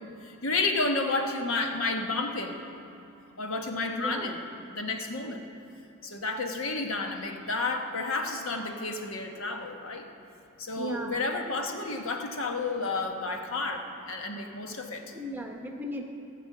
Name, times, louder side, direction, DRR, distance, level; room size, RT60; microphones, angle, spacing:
voice 1, 0.0-2.6 3.4-5.5 6.0-10.1 10.6-15.1, left 3 dB, 80° left, 4 dB, 1.1 m, -31 dB
voice 2, 4.0-4.3 5.3-5.4 10.8-11.2 15.1-16.0, equal, 10° right, 2 dB, 0.9 m, -36 dB
16.5 x 6.1 x 8.3 m, 2.7 s
head